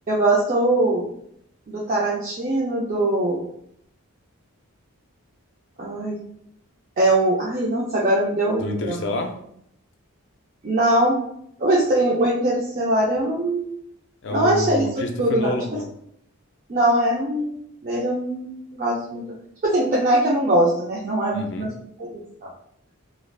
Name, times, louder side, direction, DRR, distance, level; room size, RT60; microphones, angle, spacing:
voice 1, 0.1-1.1 1.7-3.4 5.8-6.2 7.0-9.0 10.6-11.2 11.6-13.7 14.3-14.8 15.2-15.5 16.7-17.5 17.8-19.2 19.6-21.7 22.0-22.5, right 1 dB, 35° right, -5 dB, 0.4 m, -21 dB
voice 2, 8.6-9.4 14.2-15.9 21.3-21.7, left 1 dB, 55° left, 4 dB, 0.4 m, -28 dB
2.4 x 2.3 x 3.2 m, 0.71 s
head